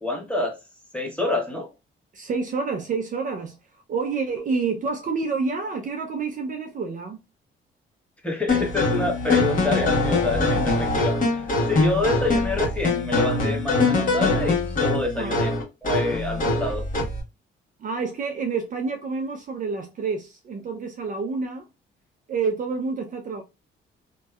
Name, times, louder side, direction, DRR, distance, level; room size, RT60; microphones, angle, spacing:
voice 1, 0.0-0.6 0.9-1.7 8.2-15.5 15.8-16.8, left 2 dB, 5° left, 1.0 m, -27 dB
voice 2, 2.1-3.6 3.9-7.2 15.2-15.4 17.8-21.6 22.3-23.4, right 4 dB, 40° right, 0.4 m, -28 dB
sound 1, 8.5-17.2, left 2 dB, 45° left, 1.1 m, -23 dB
2.6 x 2.2 x 2.2 m
cardioid pair, 90°, 20 cm